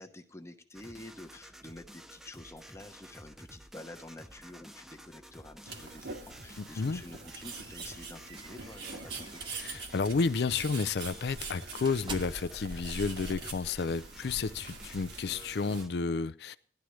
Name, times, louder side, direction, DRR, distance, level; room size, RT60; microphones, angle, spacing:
voice 1, 0.0-9.7, left 1 dB, 15° left, 0.9 m, -49 dB
sound 1, 0.7-15.9, equal, ahead, 0.4 m, -52 dB
sound 2, 5.7-15.9, right 4 dB, 80° right, 1.9 m, -45 dB
sound 3, 6.9-9.9 10.4-10.6 11.0-15.3, right 1 dB, 30° right, 0.8 m, -46 dB
voice 2, 9.6-16.6, left 4 dB, 65° left, 0.4 m, -31 dB
17.5 x 11.5 x 3.1 m
head